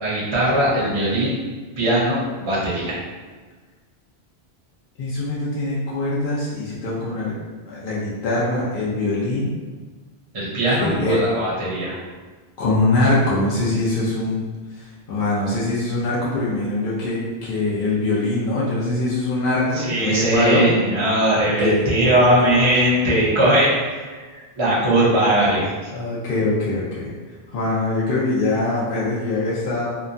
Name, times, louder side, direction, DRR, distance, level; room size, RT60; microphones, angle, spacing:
voice 1, 0.0-1.4 1.8-2.9 10.3-11.9 19.8-24.0 24.6-25.7, right 1 dB, 30° right, -7 dB, 0.7 m, -19 dB
voice 2, 5.0-7.3 7.7-9.5 10.8-11.2 12.6-14.4 14.8-20.7 21.3-22.6 25.9-27.1 27.5-29.9, left 2 dB, 65° left, -7 dB, 0.8 m, -23 dB
2.8 x 2.2 x 2.5 m, 1.4 s
omnidirectional pair, 1.1 m